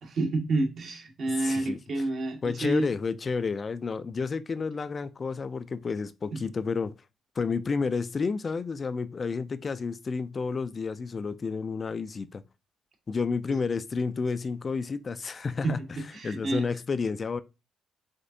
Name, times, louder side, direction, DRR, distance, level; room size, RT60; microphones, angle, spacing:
voice 1, 0.0-2.9 15.6-15.7 16.1-16.6, right 2 dB, 60° right, 1.3 m, -29 dB
voice 2, 1.3-2.1 2.4-6.9 7.4-12.4 13.1-17.4, left 4 dB, 35° left, 0.4 m, -31 dB
5.0 x 3.4 x 2.7 m
cardioid pair, 90°, 0 cm